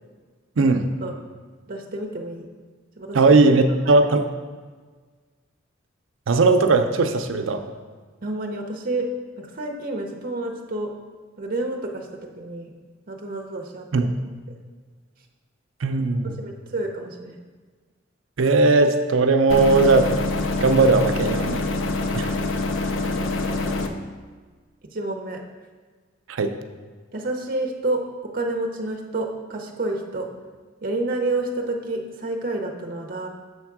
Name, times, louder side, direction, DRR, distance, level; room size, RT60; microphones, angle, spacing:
voice 1, 0.6-0.9 3.1-4.2 6.3-7.6 13.9-14.1 15.8-16.4 18.4-20.1 20.6-21.6 22.1-22.3 26.3-26.5, right 3 dB, 85° right, 7 dB, 0.6 m, -18 dB
voice 2, 1.7-2.5 3.0-3.4 3.9-4.0 8.2-9.1 9.4-10.9 11.4-12.7 13.1-14.1 16.4-17.4 22.9-23.7 24.9-25.4 27.1-30.3 30.8-33.3, right 2 dB, 45° right, 2 dB, 0.7 m, -29 dB
sound 1, 19.5-23.9, left 2 dB, 80° left, 0.6 m, -25 dB
7.0 x 3.5 x 5.9 m, 1.5 s
head